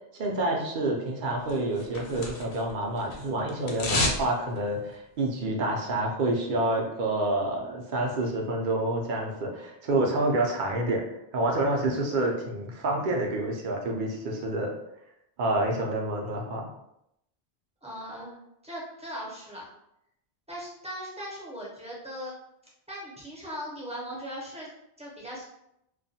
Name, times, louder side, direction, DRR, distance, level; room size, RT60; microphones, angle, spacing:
voice 1, 0.1-11.0 11.3-14.7 15.4-16.7, right 2 dB, 60° right, 0 dB, 0.6 m, -28 dB
sound 1, 1.5-2.7 3.0-4.3 4.6-4.7, left 2 dB, 90° left, 0.9 m, -29 dB
voice 2, 17.8-19.7 20.5-22.3 22.9-24.7 25.0-25.4, equal, 10° right, -6 dB, 0.5 m, -39 dB
2.3 x 2.2 x 2.7 m, 0.80 s
omnidirectional pair, 1.1 m